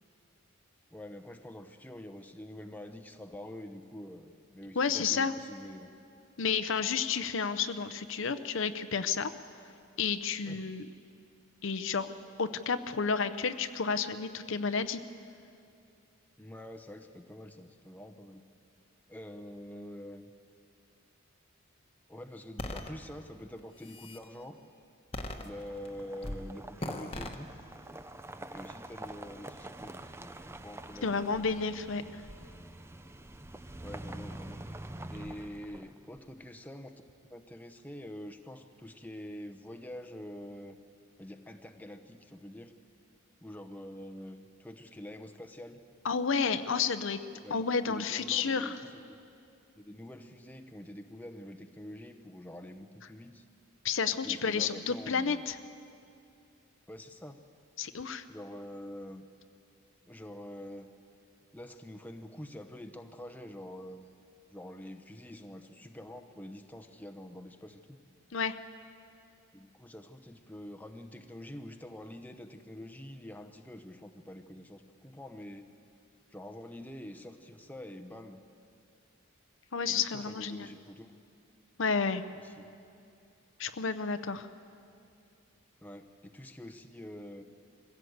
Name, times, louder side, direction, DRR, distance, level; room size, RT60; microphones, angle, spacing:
voice 1, 0.9-5.9 10.4-10.6 16.4-18.4 19.1-20.3 22.1-24.6 25.4-27.5 28.5-31.3 33.8-34.6 35.1-36.9 37.3-40.8 41.2-42.7 43.4-45.8 47.3-49.2 49.8-53.4 54.2-55.4 56.9-57.4 58.3-59.3 60.1-60.9 61.5-64.1 64.5-68.0 69.5-75.7 76.3-78.4 79.9-81.1 82.3-82.7 85.8-87.4, left 1 dB, 10° left, 5 dB, 0.8 m, -46 dB
voice 2, 4.8-5.3 6.4-9.3 10.0-10.9 11.6-12.1 12.4-15.0 31.0-32.2 46.0-47.2 47.5-48.8 53.8-55.6 57.8-58.2 68.3-68.6 79.7-80.7 81.8-82.2 83.6-84.5, left 5 dB, 65° left, 11 dB, 0.7 m, -31 dB
sound 1, 22.6-22.9 23.6-24.2 25.1-25.9 26.2-26.4 26.8-27.4, left 1 dB, 25° left, 1.2 m, -38 dB
sound 2, 25.4-36.2, right 1 dB, 10° right, 0.5 m, -46 dB
22.5 x 16.0 x 8.0 m, 2.5 s
head